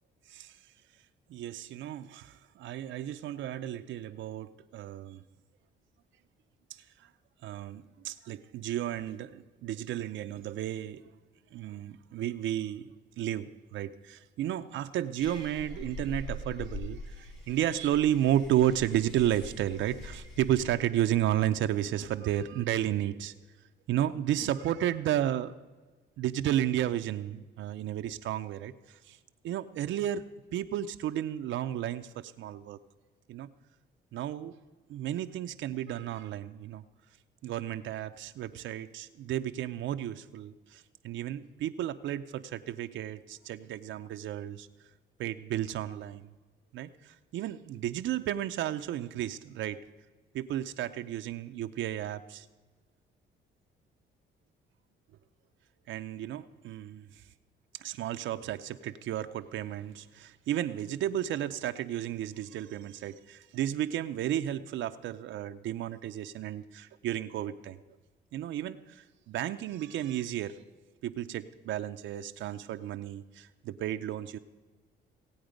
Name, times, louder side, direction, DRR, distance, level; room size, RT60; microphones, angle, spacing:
voice 1, 1.3-5.2 6.7-7.1 7.4-11.0 11.5-12.9 13.2-23.4 23.9-25.6 26.2-29.2 29.4-32.8 33.3-33.5 34.1-34.6 34.9-36.8 37.4-44.7 45.2-46.3 46.7-49.8 50.3-52.5 55.9-57.2 57.7-67.8 68.3-70.6 71.0-74.4, right 11 dB, 75° right, 8 dB, 0.5 m, -33 dB
sound 1, 15.2-20.8, left 2 dB, 70° left, 4.3 m, -43 dB
17.5 x 8.7 x 5.1 m, 1.3 s
cardioid pair, 90°, 20 cm